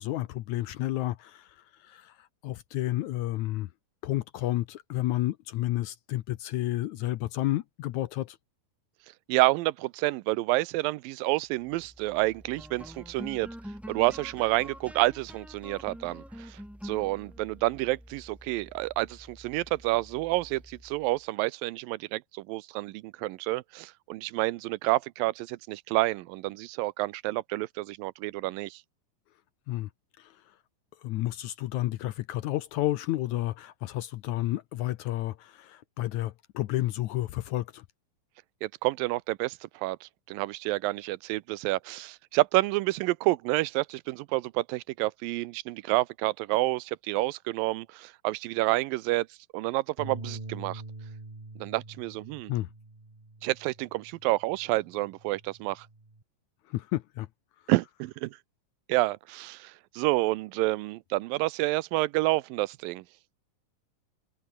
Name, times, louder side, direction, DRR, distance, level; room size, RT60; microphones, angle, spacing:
voice 1, 0.0-1.6 1.8-3.7 4.0-8.4 29.7-29.9 30.2-30.3 31.0-37.9 52.5-52.7 56.7-57.3, left 15 dB, 75° left, 1.9 m, -31 dB
voice 2, 9.3-13.5 13.9-28.8 38.6-49.3 49.5-50.8 51.6-52.5 53.4-55.9 57.7-58.4 58.9-63.0, right 20 dB, 85° right, 2.4 m, -29 dB
sound 1, 11.6-21.2, equal, ahead, 4.3 m, -47 dB
sound 2, 50.0-56.2, right 2 dB, 15° right, 1.3 m, -45 dB
omnidirectional pair, 4.0 m